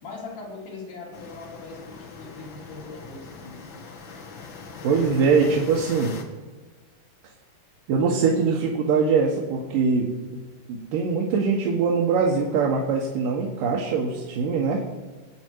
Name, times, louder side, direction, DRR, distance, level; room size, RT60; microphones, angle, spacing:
voice 1, 0.0-3.9, left 3 dB, 70° left, -3 dB, 4.6 m, -40 dB
sound 1, 1.1-6.2, left 4 dB, 50° left, 1.5 m, -41 dB
voice 2, 4.8-6.1 7.9-10.4 10.7-14.8, right 5 dB, 80° right, -2 dB, 3.0 m, -22 dB
23.5 x 8.7 x 4.6 m, 1.3 s
omnidirectional pair, 3.9 m